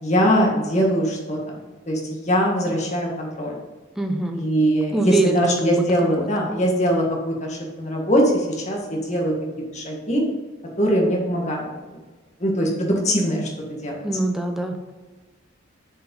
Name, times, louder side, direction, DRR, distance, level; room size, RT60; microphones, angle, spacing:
voice 1, 0.0-2.0 2.3-3.6 4.3-9.3 9.7-10.2 10.8-11.6 12.4-13.5 13.8-14.0, equal, 35° left, -1 dB, 1.7 m, -22 dB
voice 2, 4.0-4.4 4.9-5.8 6.2-6.5 14.0-14.9, right 1 dB, ahead, 3 dB, 0.7 m, -24 dB
6.9 x 5.0 x 5.4 m, 1.3 s
head